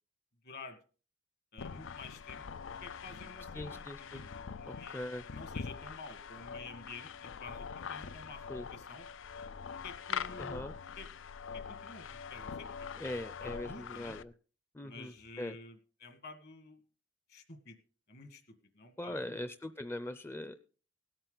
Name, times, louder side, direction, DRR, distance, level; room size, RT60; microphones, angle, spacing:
voice 1, 0.4-0.8 1.5-2.4 2.8-4.2 4.6-5.0 5.3-8.5 8.7-9.1 9.8-10.6 11.0-11.1 11.5-12.7 13.4-14.2 14.8-16.8 17.3-17.8 18.1-19.4, left 3 dB, 55° left, 8 dB, 1.9 m, -50 dB
sound 1, 1.6-14.2, left 6 dB, 80° left, 0.5 m, -43 dB
voice 2, 3.5-4.2 4.7-5.2 8.5-8.7 10.4-10.7 13.0-14.3 14.7-15.6 19.0-20.6, left 1 dB, 15° left, 11 dB, 0.5 m, -41 dB
18.0 x 8.9 x 4.0 m, 0.39 s
head